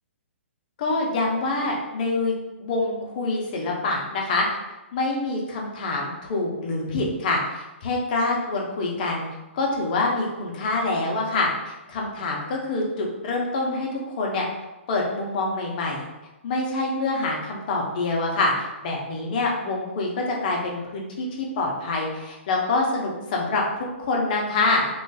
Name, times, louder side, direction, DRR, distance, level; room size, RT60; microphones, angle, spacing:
voice 1, 0.8-2.3 2.6-4.4 4.9-9.3 9.5-11.5 11.9-14.4 14.9-16.0 16.4-24.9, left 2 dB, 40° left, -2 dB, 0.8 m, -26 dB
3.1 x 2.5 x 3.9 m, 1.0 s
hypercardioid pair, 160°, 7 cm